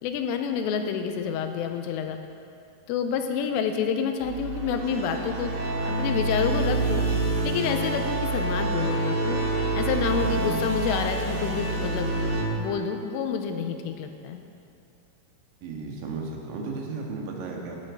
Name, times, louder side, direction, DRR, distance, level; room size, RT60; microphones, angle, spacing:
voice 1, 0.0-2.2 2.9-5.5 5.9-7.0 7.4-9.4 9.7-12.1 12.6-14.4, left 7 dB, 85° left, 6 dB, 3.3 m, -28 dB
sound 1, 4.2-12.4, right 2 dB, 70° right, 3.9 m, -27 dB
voice 2, 10.2-10.6 15.6-17.8, right 4 dB, 85° right, 0 dB, 4.3 m, -34 dB
17.0 x 13.0 x 3.8 m, 2.6 s
omnidirectional pair, 5.8 m